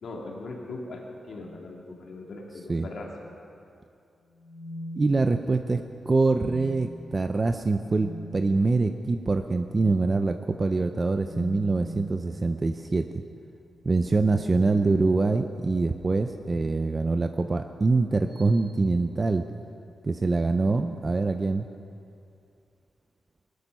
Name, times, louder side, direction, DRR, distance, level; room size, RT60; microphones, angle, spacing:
voice 1, 0.0-3.3, left 2 dB, 60° left, -1 dB, 2.5 m, -39 dB
sound 1, 4.3-5.6 6.2-7.0 7.8-8.3 9.7-10.0 11.2-12.2 13.7-15.6 16.6-17.1 18.3-18.6, equal, 50° right, 4.0 m, -42 dB
voice 2, 5.0-13.1 13.8-19.4 20.0-21.7, right 3 dB, 25° right, 7 dB, 0.5 m, -24 dB
19.5 x 13.0 x 5.5 m, 2.5 s
wide cardioid pair, 145°, 0 cm